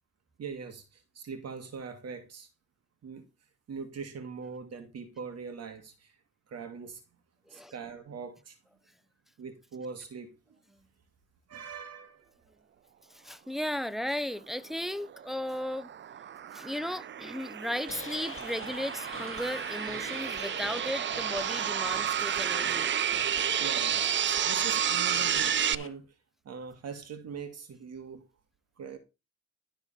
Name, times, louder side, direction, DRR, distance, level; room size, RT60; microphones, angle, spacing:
voice 1, 0.4-2.5 3.0-3.3 3.7-6.1 6.5-7.0 7.5-8.6 9.4-10.3 11.5-12.3 23.6-26.1 26.5-28.3 28.8-29.0, right 5 dB, 55° right, 2.2 m, -42 dB
voice 2, 13.1-15.9 16.5-22.9, left 1 dB, ahead, 0.7 m, -35 dB
sound 1, 14.9-25.8, right 9 dB, 40° right, 0.5 m, -31 dB
sound 2, 17.9-25.9, left 6 dB, 45° left, 1.8 m, -44 dB
12.5 x 4.5 x 5.7 m
cardioid pair, 90°, 30 cm